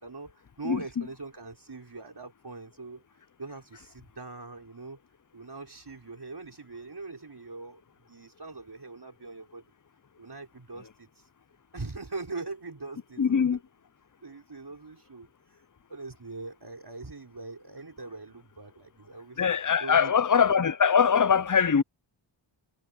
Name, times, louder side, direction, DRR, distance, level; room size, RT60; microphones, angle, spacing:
voice 1, 0.0-3.0 3.4-5.0 5.3-9.6 10.2-11.3 11.7-13.6 14.2-15.3 15.9-19.5 19.8-20.1, right 3 dB, 50° right, 5.0 m, -42 dB
voice 2, 13.2-13.6 19.4-21.8, left 7 dB, 40° left, 0.8 m, -22 dB
wide cardioid pair, 50°, 48 cm